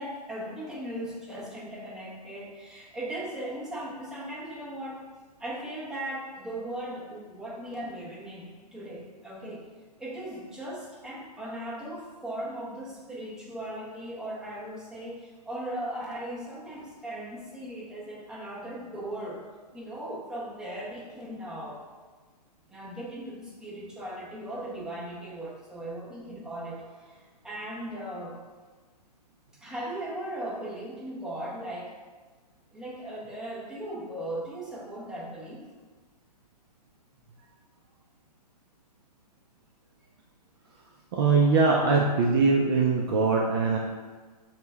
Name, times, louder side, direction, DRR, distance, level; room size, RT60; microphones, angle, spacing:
voice 1, 0.0-5.0 5.4-9.6 10.0-19.4 19.7-21.8 22.7-28.4 29.6-31.9 32.7-35.7, right 1 dB, ahead, -8 dB, 0.7 m, -38 dB
voice 2, 41.1-43.8, right 4 dB, 35° right, -2 dB, 0.4 m, -22 dB
6.5 x 2.2 x 3.5 m, 1.4 s
hypercardioid pair, 150°, 21 cm